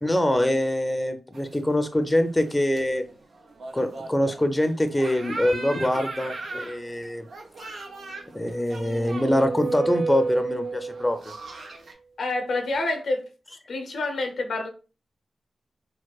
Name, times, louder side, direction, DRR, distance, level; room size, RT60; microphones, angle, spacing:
voice 1, 0.0-3.0 3.7-7.3 8.3-11.4, left 1 dB, 15° left, 0.6 m, -24 dB
sound 1, 1.3-11.9, right 2 dB, 75° right, 0.6 m, -40 dB
sound 2, 8.3-11.3, right 4 dB, 35° right, 0.6 m, -31 dB
voice 2, 12.2-13.2 13.7-14.7, left 2 dB, 75° left, 0.7 m, -27 dB
4.5 x 2.1 x 2.3 m
cardioid pair, 50°, 0 cm